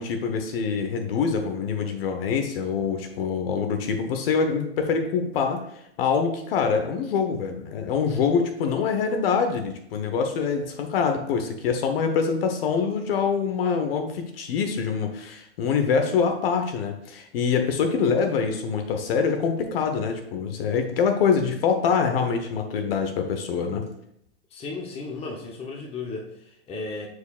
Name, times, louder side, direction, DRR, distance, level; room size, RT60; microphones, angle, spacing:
voice 1, 0.0-5.6 6.0-23.8, left 6 dB, 55° left, 6 dB, 1.1 m, -25 dB
voice 2, 24.5-27.1, left 3 dB, 15° left, 0 dB, 1.0 m, -35 dB
9.1 x 4.8 x 2.4 m, 0.74 s
hypercardioid pair, 130°, 34 cm